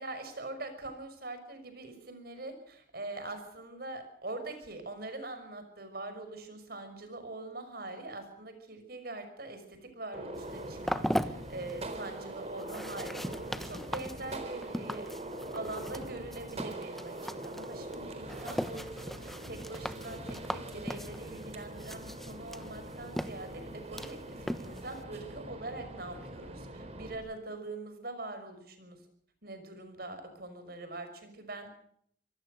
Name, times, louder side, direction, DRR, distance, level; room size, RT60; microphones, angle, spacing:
voice 1, 0.0-13.4 13.6-15.1 15.5-29.1 29.4-31.8, right 2 dB, 55° right, 8 dB, 5.9 m, -43 dB
Gunshot gunfire, 10.1-27.1, right 1 dB, 35° right, 3.8 m, -43 dB
sound 1, 10.4-25.0, equal, ahead, 1.0 m, -40 dB
26.0 x 18.0 x 6.6 m, 0.68 s
head